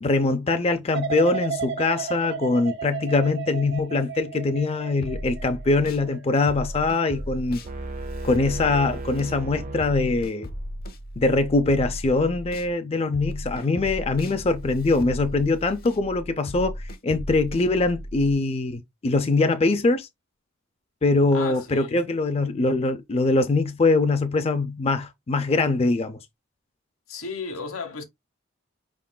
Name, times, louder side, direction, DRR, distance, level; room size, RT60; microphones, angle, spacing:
voice 1, 0.0-7.6 8.2-10.5 11.2-20.1 21.0-26.2, left 3 dB, 30° left, 0.4 m, -23 dB
sound 1, 0.9-7.9 8.3-8.7, right 7 dB, 55° right, 0.9 m, -35 dB
sound 2, 5.0-6.1 6.5-12.7 13.1-18.3, equal, 45° left, 0.8 m, -36 dB
sound 3, 7.6-10.6, right 3 dB, 40° right, 0.4 m, -36 dB
voice 2, 21.3-22.0 27.1-28.0, left 4 dB, 85° left, 1.2 m, -34 dB
5.5 x 3.6 x 2.2 m
head